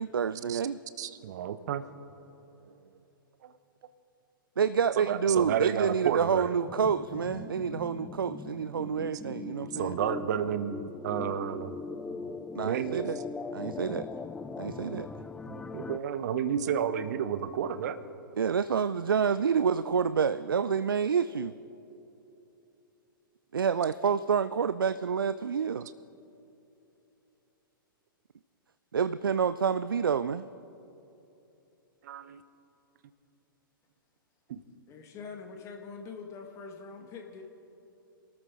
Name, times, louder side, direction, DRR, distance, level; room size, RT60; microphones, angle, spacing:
voice 1, 0.0-0.8 4.6-9.9 12.5-13.2 13.5-14.1 14.6-15.1 18.4-21.5 23.5-25.9 28.9-30.5, right 6 dB, 70° right, 14 dB, 0.4 m, -28 dB
voice 2, 1.0-1.8 3.4-3.5 5.0-6.5 9.7-11.8 12.6-13.1 15.0-18.0 32.0-32.4 34.5-34.6, right 8 dB, 50° right, 12 dB, 0.8 m, -32 dB
sound 1, 6.7-16.0, left 4 dB, 5° left, 0.3 m, -40 dB
voice 3, 34.9-37.4, left 5 dB, 25° left, 3 dB, 1.6 m, -44 dB
27.0 x 13.5 x 3.7 m, 2.9 s
figure-of-eight pair, 110°, 12 cm